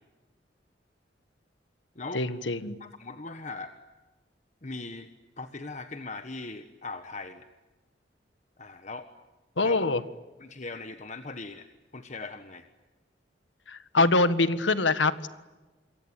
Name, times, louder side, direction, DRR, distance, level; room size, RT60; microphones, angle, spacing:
voice 1, 2.1-2.8 9.6-10.0 13.7-15.3, left 3 dB, 90° left, 13 dB, 1.6 m, -24 dB
voice 2, 2.8-3.7 4.6-5.1 5.4-7.5 8.6-9.1 9.6-9.8 10.4-11.7 11.9-12.6, left 3 dB, 40° left, 9 dB, 1.3 m, -39 dB
27.5 x 23.5 x 9.1 m, 1.2 s
head